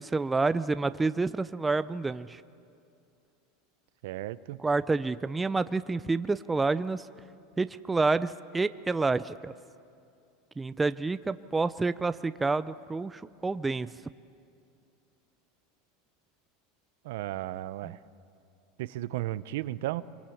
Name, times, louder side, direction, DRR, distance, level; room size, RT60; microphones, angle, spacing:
voice 1, 0.0-2.4 4.6-7.1 7.6-9.5 10.6-13.9 17.8-17.9, right 3 dB, 10° right, 14 dB, 0.5 m, -28 dB
voice 2, 4.0-4.6 17.0-18.0 18.8-20.0, right 15 dB, 75° right, 16 dB, 0.7 m, -34 dB
24.5 x 23.5 x 7.2 m, 2.5 s
supercardioid pair, 130°, 0 cm